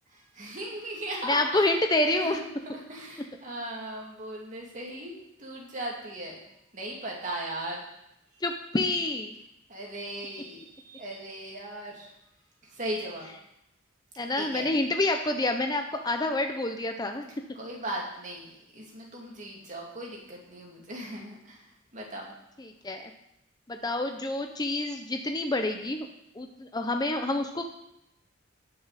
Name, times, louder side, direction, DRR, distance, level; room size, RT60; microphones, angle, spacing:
voice 1, 0.1-1.7 2.1-6.4 6.7-7.8 9.7-12.1 12.7-13.3 14.3-14.7 17.5-21.6 21.9-22.3, right 1 dB, 40° right, -2 dB, 2.6 m, -38 dB
voice 2, 1.3-2.4 8.4-9.3 14.2-17.3 22.6-23.1 23.7-26.1 26.4-27.6, left 2 dB, 20° left, 5 dB, 0.7 m, -28 dB
17.5 x 6.6 x 4.2 m, 0.82 s
head